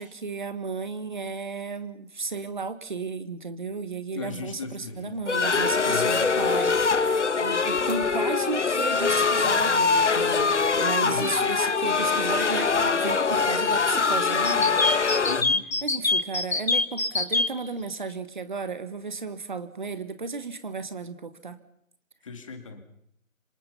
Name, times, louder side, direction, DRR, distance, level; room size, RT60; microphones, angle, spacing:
voice 1, 0.0-14.8 15.8-21.6, right 4 dB, 35° right, 12 dB, 1.6 m, -34 dB
voice 2, 4.1-5.2 5.8-6.1 11.0-11.4 15.3-15.6 22.2-22.8, left 4 dB, 25° left, 6 dB, 2.4 m, -37 dB
sound 1, 5.3-15.4, left 4 dB, 60° left, 1.2 m, -23 dB
sound 2, 14.4-17.5, left 3 dB, 75° left, 2.5 m, -24 dB
26.5 x 25.0 x 5.7 m, 0.72 s
figure-of-eight pair, 165°, 41 cm